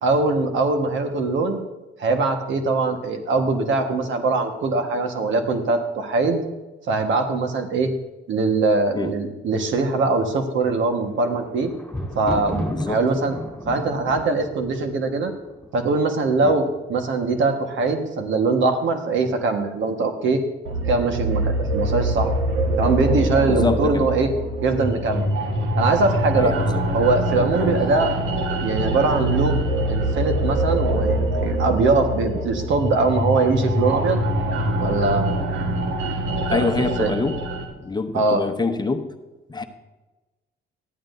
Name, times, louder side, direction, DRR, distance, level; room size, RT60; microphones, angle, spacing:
voice 1, 0.0-1.6 2.0-6.4 6.9-7.9 8.3-11.7 12.1-13.3 13.6-15.3 15.7-20.4 20.9-22.3 22.8-24.3 24.6-25.3 25.7-26.6 26.9-28.2 28.6-29.6 29.9-34.2 34.8-35.3 36.5-37.1 38.1-38.4, right 3 dB, 75° right, 6 dB, 1.5 m, -22 dB
Thunder, 10.9-16.0 16.8-17.3 17.5-17.6, left 1 dB, 5° left, 4.1 m, -33 dB
sound 1, 20.6-37.6, right 1 dB, 90° right, 1.5 m, -24 dB
voice 2, 23.5-24.1 26.3-26.8 27.6-27.8 36.4-37.3 37.8-39.1 39.5-39.6, left 3 dB, 20° left, 7 dB, 0.9 m, -25 dB
13.5 x 11.0 x 2.7 m, 1.1 s
cardioid pair, 90°, 20 cm